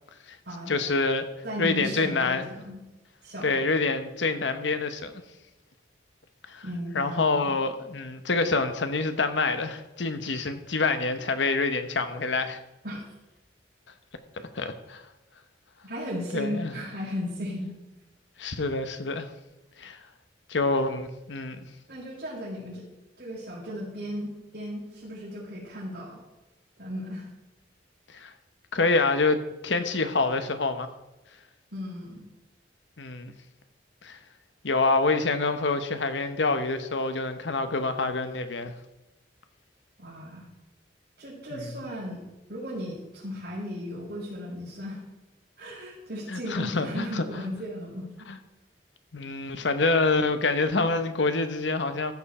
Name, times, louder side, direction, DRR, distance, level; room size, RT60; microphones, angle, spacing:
voice 1, 0.7-1.3 1.6-2.5 3.4-5.1 6.5-6.6 6.9-12.6 14.5-15.0 16.3-16.7 18.4-19.3 19.8-20.0 20.5-21.6 28.1-28.3 28.7-30.9 33.0-33.3 34.0-34.2 34.6-38.7 41.5-41.7 46.3-47.4 48.3-48.4 49.1-52.1, left 3 dB, 85° left, 9 dB, 1.0 m, -26 dB
voice 2, 1.4-2.8 3.2-3.6 6.6-7.5 12.8-13.0 15.8-17.8 20.7-20.8 21.9-22.8 23.2-26.2 26.8-27.3 31.7-32.3 40.0-40.5 41.2-42.2 42.5-45.0 45.6-48.1, equal, 60° right, -11 dB, 4.3 m, -36 dB
14.5 x 6.9 x 4.3 m, 1.0 s
head